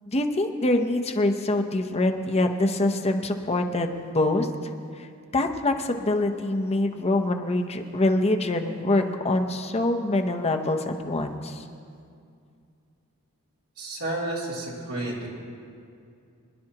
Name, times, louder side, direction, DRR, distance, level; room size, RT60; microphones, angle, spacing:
voice 1, 0.1-3.9 4.1-4.5 5.0-5.1 5.3-11.6, left 2 dB, 30° left, 4 dB, 0.7 m, -24 dB
voice 2, 13.8-15.3, right 2 dB, 80° right, -5 dB, 3.0 m, -31 dB
26.0 x 11.0 x 2.9 m, 2.4 s
head